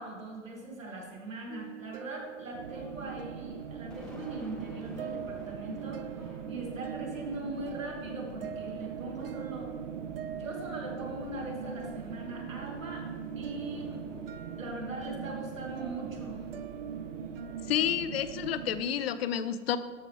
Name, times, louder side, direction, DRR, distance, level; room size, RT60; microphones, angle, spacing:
voice 1, 0.0-9.7 10.4-13.1 13.4-14.0 14.6-16.5, right 2 dB, 85° right, -1 dB, 2.3 m, -41 dB
sound 1, 1.5-18.9, right 9 dB, 50° right, 0.5 m, -46 dB
sound 2, 2.5-18.8, right 7 dB, 70° right, 1.0 m, -41 dB
Thunder, 3.5-18.1, left 1 dB, ahead, 0.6 m, -52 dB
voice 2, 17.7-19.8, left 10 dB, 50° left, 13 dB, 0.6 m, -30 dB
13.0 x 4.7 x 3.6 m, 1.5 s
hypercardioid pair, 125°, 39 cm